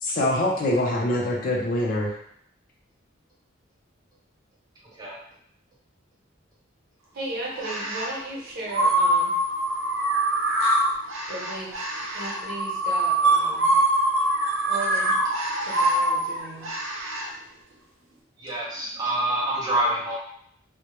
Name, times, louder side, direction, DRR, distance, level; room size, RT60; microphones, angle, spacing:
voice 1, 0.0-2.1, left 1 dB, 45° left, -2 dB, 0.5 m, -24 dB
voice 2, 7.1-9.3 11.3-11.8 12.1-13.8 14.7-15.1 15.6-16.7, right 2 dB, 50° right, -5 dB, 0.8 m, -35 dB
sound 1, 7.6-8.2 8.7-17.3, right 1 dB, 85° right, 0.6 m, -24 dB
voice 3, 18.4-20.2, right 1 dB, 20° right, -6 dB, 0.4 m, -26 dB
2.2 x 2.1 x 2.9 m, 0.69 s
head